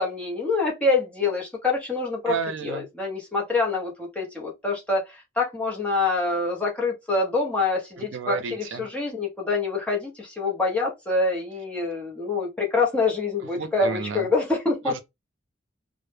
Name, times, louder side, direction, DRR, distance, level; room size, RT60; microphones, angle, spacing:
voice 1, 0.0-2.4 2.6-14.9, left 3 dB, 5° left, 0.6 m, -26 dB
voice 2, 2.3-2.9 8.0-8.9 13.6-14.3 14.9-15.0, right 5 dB, 75° right, 0.4 m, -31 dB
2.0 x 2.0 x 3.1 m
head